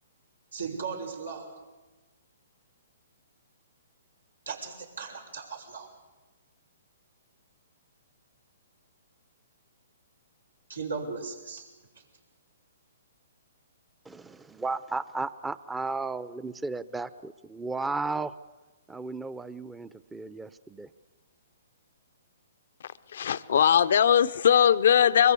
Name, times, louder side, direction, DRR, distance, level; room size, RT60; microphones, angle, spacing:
voice 1, 0.5-1.6 4.5-5.9 10.7-11.7 11.9-12.0, right 5 dB, 85° right, 2 dB, 6.2 m, -37 dB
voice 2, 14.0-18.3 18.9-20.9, right 3 dB, 10° right, 15 dB, 0.8 m, -34 dB
voice 3, 22.8-25.3, left 9 dB, 65° left, 12 dB, 0.7 m, -21 dB
24.5 x 22.0 x 8.5 m, 1.2 s
hypercardioid pair, 130°, 0 cm